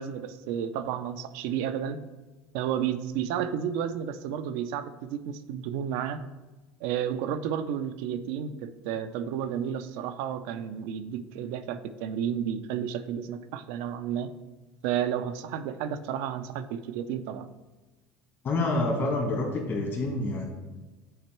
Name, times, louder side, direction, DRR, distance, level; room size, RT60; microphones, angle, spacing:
voice 1, 0.0-2.0 2.5-6.2 6.8-14.3 14.8-17.5, right 9 dB, 75° right, 10 dB, 0.5 m, -32 dB
voice 2, 18.4-20.4, left 2 dB, 45° left, -1 dB, 1.8 m, -27 dB
8.0 x 4.3 x 4.4 m, 1.2 s
supercardioid pair, 95°, 5 cm